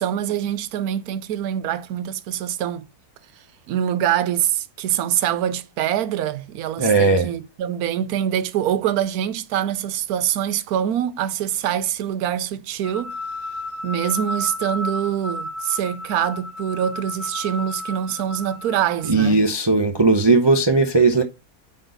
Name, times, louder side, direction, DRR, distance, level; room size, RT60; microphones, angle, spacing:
voice 1, 0.0-2.9 3.7-13.1 13.8-19.4, right 10 dB, 75° right, 1.2 m, -24 dB
voice 2, 6.8-7.3 19.1-21.2, right 3 dB, 30° right, 0.4 m, -17 dB
sound 1, 12.8-19.1, left 1 dB, 45° left, 1.2 m, -32 dB
9.1 x 4.0 x 3.9 m
omnidirectional pair, 1.7 m